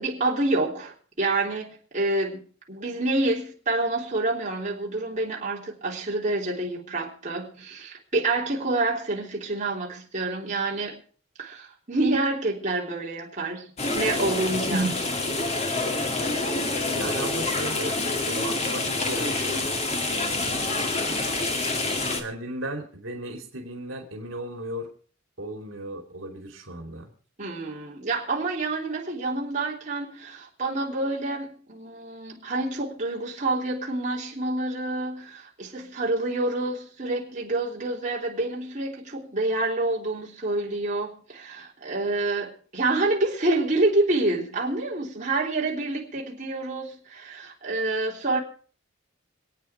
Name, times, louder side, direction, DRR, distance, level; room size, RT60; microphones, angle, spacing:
voice 1, 0.0-11.0 11.4-13.7 14.0-15.0 27.4-48.4, right 2 dB, 40° right, 3.5 m, -27 dB
sound 1, 13.8-22.2, left 2 dB, 35° left, 2.2 m, -27 dB
voice 2, 16.9-18.0 18.2-19.7 20.1-20.7 22.1-24.9 25.4-27.1, right 1 dB, 75° right, 2.9 m, -36 dB
26.5 x 9.1 x 4.6 m
head